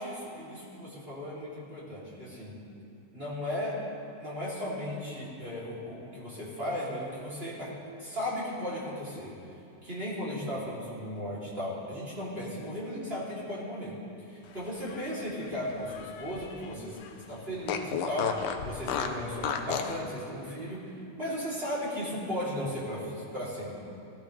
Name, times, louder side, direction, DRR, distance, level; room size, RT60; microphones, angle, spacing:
voice 1, 0.0-2.6 3.1-3.8 4.2-7.7 8.0-9.3 9.8-14.0 14.3-23.7, left 1 dB, 20° right, -7 dB, 3.1 m, -36 dB
Fart, 14.7-16.7 17.0-17.1 17.7-20.0, left 7 dB, 85° left, 2.4 m, -34 dB
18.5 x 15.0 x 3.3 m, 2.7 s
omnidirectional pair, 3.7 m